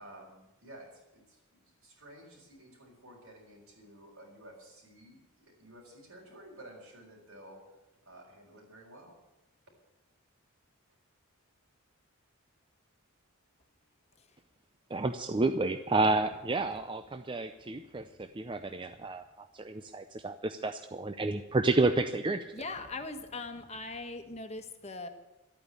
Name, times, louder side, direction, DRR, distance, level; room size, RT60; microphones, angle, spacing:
voice 1, 0.0-7.6 8.0-9.1, right 1 dB, 70° right, -5 dB, 4.4 m, -53 dB
voice 2, 14.9-22.5, right 2 dB, 20° right, 9 dB, 0.5 m, -30 dB
voice 3, 22.5-25.1, left 3 dB, 30° left, 7 dB, 1.3 m, -40 dB
13.0 x 9.0 x 9.7 m, 1.0 s
head